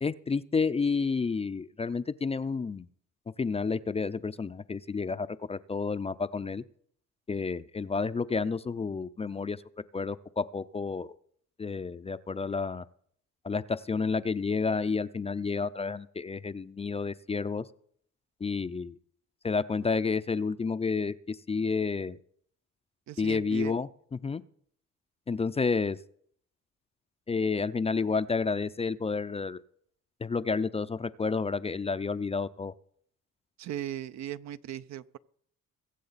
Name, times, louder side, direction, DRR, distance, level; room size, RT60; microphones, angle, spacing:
voice 1, 0.0-2.9 3.4-6.6 7.3-9.6 9.9-11.1 11.6-12.9 13.4-17.6 18.4-18.9 19.4-22.2 23.2-24.4 25.3-26.0 27.3-29.6 30.2-32.7, left 4 dB, 20° left, 0.4 m, -30 dB
voice 2, 23.1-23.7 33.6-35.2, right 12 dB, 65° right, 0.5 m, -38 dB
22.0 x 7.5 x 4.0 m
cardioid pair, 90°, 30 cm